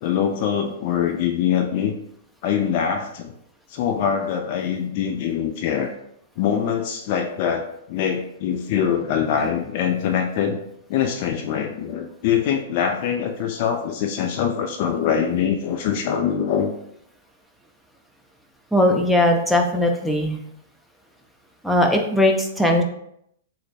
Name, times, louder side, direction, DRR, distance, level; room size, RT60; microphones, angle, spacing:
voice 1, 0.0-1.9 2.4-3.3 3.7-5.9 6.4-10.6 10.9-16.7, left 8 dB, 50° left, 5 dB, 0.3 m, -23 dB
voice 2, 18.7-20.4 21.6-22.8, left 1 dB, ahead, 1 dB, 0.5 m, -19 dB
3.1 x 2.0 x 4.1 m, 0.75 s
hypercardioid pair, 120°, 0 cm